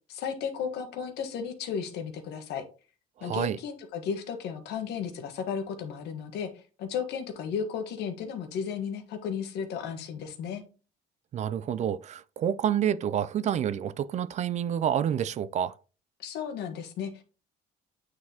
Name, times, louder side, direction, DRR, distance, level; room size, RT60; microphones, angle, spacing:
voice 1, 0.1-2.6 3.2-10.6 16.2-17.2, left 7 dB, 80° left, 1.3 m, -34 dB
voice 2, 3.2-3.6 11.3-15.7, right 9 dB, 45° right, 0.4 m, -28 dB
8.7 x 3.9 x 2.8 m
cardioid pair, 110°, 17 cm